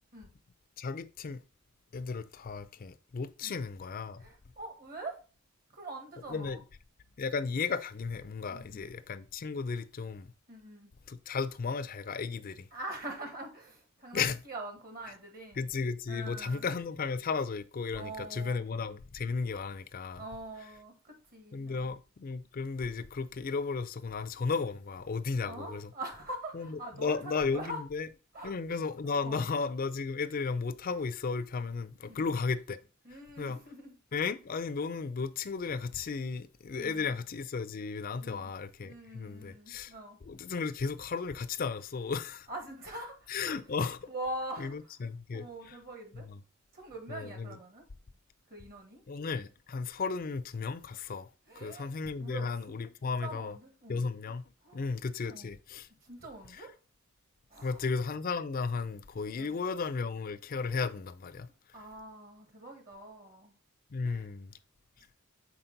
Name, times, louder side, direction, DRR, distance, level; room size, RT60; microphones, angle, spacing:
voice 1, 0.8-1.4 1.9-4.3 6.3-6.6 7.2-10.3 11.1-12.7 14.1-14.4 15.6-20.2 21.5-25.9 26.6-26.7 27.0-28.1 28.4-32.8 33.4-33.6 34.1-39.9 40.3-42.5 43.3-44.0 44.6-44.7 45.0-45.8 47.1-47.5 49.1-51.3 51.6-53.6 53.9-54.4 54.7-55.9 56.5-56.6 57.6-61.5 63.9-64.5, left 4 dB, 45° left, 0.4 m, -34 dB
voice 2, 4.2-5.2 5.7-6.6 8.5-8.9 10.5-10.9 12.7-15.7 16.1-16.6 17.9-18.6 20.2-21.9 25.5-27.8 28.3-28.5 29.2-29.5 32.1-32.3 33.0-34.0 36.8-37.2 38.2-38.5 38.8-40.2 42.5-43.6 44.1-44.9 45.3-46.3 46.7-47.9 48.5-49.0 51.5-52.8 53.2-54.0 54.6-55.0 55.3-55.5 56.0-56.7 57.5-57.9 59.4-59.6 61.7-63.5 64.0-64.3 65.0-65.1, right 1 dB, 45° right, 1.5 m, -44 dB
5.8 x 4.2 x 3.9 m
head